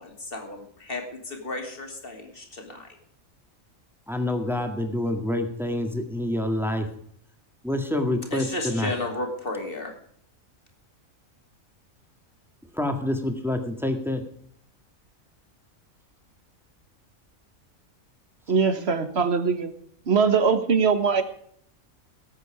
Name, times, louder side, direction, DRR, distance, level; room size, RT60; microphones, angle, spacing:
voice 1, 0.0-2.9 8.3-10.0, left 2 dB, 40° left, 3 dB, 2.7 m, -33 dB
voice 2, 4.1-6.9 7.6-8.9 12.7-14.2, left 1 dB, ahead, 5 dB, 1.8 m, -27 dB
voice 3, 18.5-19.7 20.1-21.2, right 5 dB, 50° right, 10 dB, 1.5 m, -21 dB
18.0 x 8.4 x 5.0 m, 0.65 s
omnidirectional pair, 1.4 m